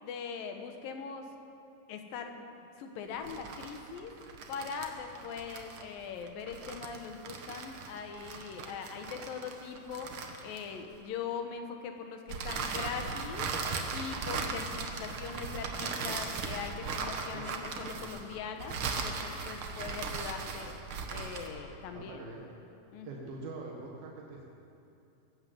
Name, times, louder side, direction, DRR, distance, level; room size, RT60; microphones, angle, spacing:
voice 1, 0.0-1.3 1.9-2.4 2.8-4.1 4.5-13.5 13.9-20.8 21.1-22.2 22.9-23.3, left 6 dB, 75° left, 5 dB, 2.9 m, -41 dB
sound 1, 3.1-11.0 12.3-21.6, right 4 dB, 70° right, 1.2 m, -38 dB
voice 2, 21.9-22.4 23.0-24.5, right 3 dB, 90° right, -2 dB, 3.3 m, -43 dB
20.5 x 8.9 x 7.9 m, 2.7 s
omnidirectional pair, 4.1 m